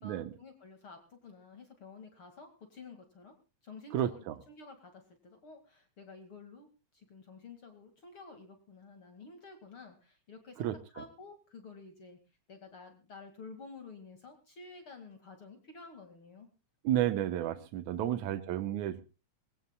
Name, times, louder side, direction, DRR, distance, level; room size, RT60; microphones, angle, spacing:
voice 1, 0.0-3.4 3.6-6.7 6.9-12.2 12.5-16.5 18.0-18.4, left 4 dB, 45° left, 6 dB, 2.9 m, -51 dB
voice 2, 3.9-4.4 10.6-10.7 16.8-19.0, right 12 dB, 80° right, 8 dB, 2.4 m, -31 dB
23.5 x 17.0 x 2.3 m, 0.33 s
omnidirectional pair, 3.3 m